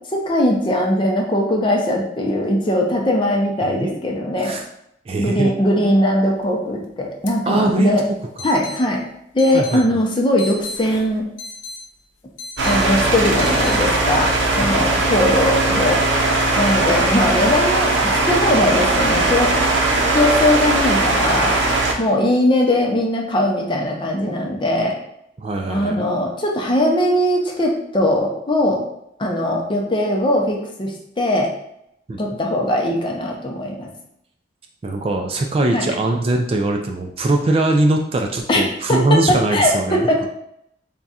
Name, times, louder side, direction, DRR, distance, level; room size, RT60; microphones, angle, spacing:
voice 1, 0.1-4.6 5.2-8.0 8.4-9.0 9.3-11.2 12.6-16.0 16.6-19.5 20.1-21.6 22.0-24.9 25.7-28.8 29.2-31.5 32.2-33.9 35.7-35.8 38.5-38.6 38.9-40.3, left 1 dB, 25° left, 0 dB, 0.6 m, -20 dB
voice 2, 3.6-4.0 4.4-4.6 5.1-5.5 7.5-8.0 9.5-9.8 14.6-14.8 25.4-26.1 32.1-32.2 34.8-40.3, right 2 dB, 30° right, 3 dB, 0.3 m, -21 dB
sound 1, 7.3-7.4 7.6-7.7 8.4-8.8 9.4-9.8 10.4-11.8 12.4-12.8 13.4-13.8, left 2 dB, 90° left, 0.6 m, -34 dB
sound 2, 12.6-21.9, right 2 dB, 85° right, 0.7 m, -19 dB
3.5 x 2.3 x 4.1 m, 0.75 s
head